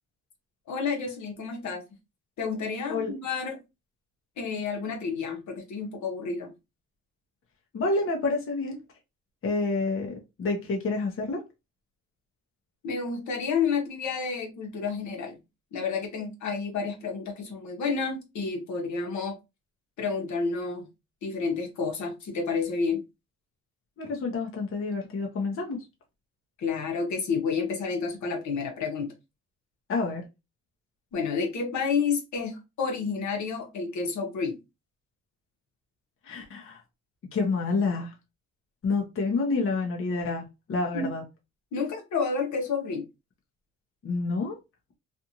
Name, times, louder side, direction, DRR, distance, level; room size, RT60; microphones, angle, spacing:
voice 1, 0.7-1.8 2.4-3.6 4.4-6.5 12.8-15.4 15.7-19.4 20.0-20.9 21.2-23.0 26.6-29.1 31.1-34.6 40.9-41.1 41.7-43.0, left 5 dB, 70° left, 1.1 m, -30 dB
voice 2, 7.7-8.8 9.4-11.4 24.0-25.8 29.9-30.3 36.2-36.8 37.3-38.1 38.8-41.2 44.0-44.6, left 3 dB, 45° left, 0.9 m, -28 dB
2.6 x 2.5 x 2.8 m
cardioid pair, 90°, 30 cm